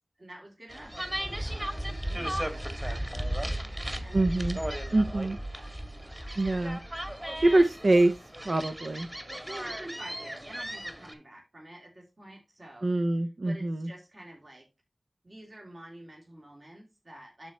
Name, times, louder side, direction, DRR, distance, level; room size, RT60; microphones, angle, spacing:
voice 1, 0.2-4.9 5.5-6.3 9.4-12.9 13.4-14.7 15.2-17.5, right 1 dB, 55° right, 0 dB, 3.2 m, -49 dB
sound 1, 0.7-11.1, right 1 dB, 25° right, 2.2 m, -35 dB
voice 2, 4.1-4.6 4.9-5.4 6.4-6.8 7.4-8.1 8.4-9.1 12.8-13.9, right 2 dB, 70° right, 7 dB, 0.8 m, -24 dB
12.0 x 4.5 x 3.1 m, 0.27 s
cardioid pair, 45°, 0 cm